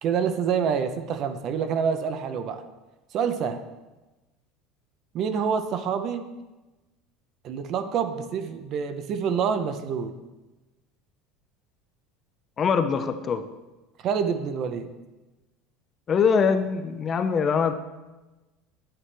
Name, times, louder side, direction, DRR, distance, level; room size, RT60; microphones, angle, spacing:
voice 1, 0.0-2.6 3.1-3.6 5.1-6.3 7.4-10.2 14.0-14.9, right 7 dB, 40° right, 9 dB, 0.7 m, -27 dB
voice 2, 12.6-13.5 16.1-17.7, left 6 dB, 25° left, 9 dB, 0.4 m, -23 dB
9.2 x 8.8 x 3.3 m, 1.1 s
cardioid pair, 165°, 0 cm